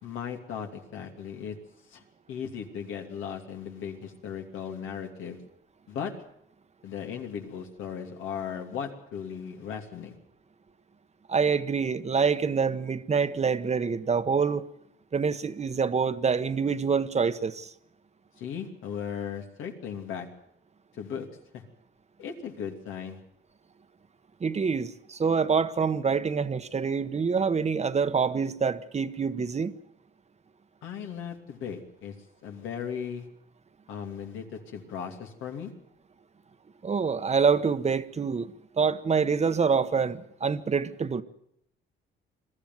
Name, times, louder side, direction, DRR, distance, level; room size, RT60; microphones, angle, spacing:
voice 1, 0.0-1.6 1.9-2.0 2.3-5.4 5.9-6.1 6.8-10.2 18.4-20.3 20.9-21.3 21.5-21.6 22.2-23.2 30.8-32.1 32.4-33.3 33.9-35.7, left 7 dB, 85° left, 2.8 m, -37 dB
voice 2, 11.3-14.7 15.1-17.7 24.4-29.7 36.8-41.2, right 5 dB, 35° right, 1.1 m, -26 dB
22.0 x 13.5 x 9.3 m
cardioid pair, 90°, 20 cm